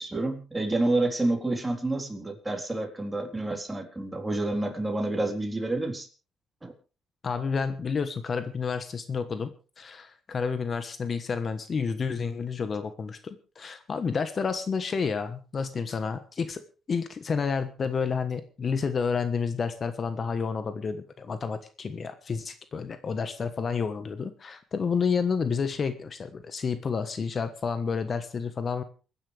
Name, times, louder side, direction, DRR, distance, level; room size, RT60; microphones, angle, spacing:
voice 1, 0.0-6.1 6.6-6.7, right 2 dB, 15° right, 3 dB, 3.8 m, -29 dB
voice 2, 7.2-9.5 9.8-16.6 16.9-28.8, left 5 dB, 45° left, 10 dB, 1.3 m, -30 dB
28.5 x 10.0 x 3.4 m, 0.36 s
cardioid pair, 90°, 0 cm